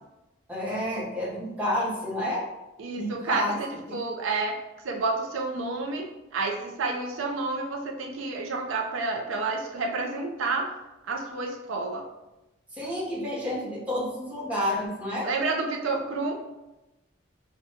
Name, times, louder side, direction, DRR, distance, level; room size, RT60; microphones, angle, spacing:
voice 1, 0.5-2.5 3.0-3.6 3.9-4.0 12.7-15.3, left 1 dB, 5° right, -6 dB, 0.8 m, -30 dB
voice 2, 2.8-4.6 4.8-10.7 11.1-12.1 15.2-16.3, right 3 dB, 80° right, 2 dB, 0.5 m, -30 dB
5.0 x 2.2 x 2.7 m, 0.98 s
head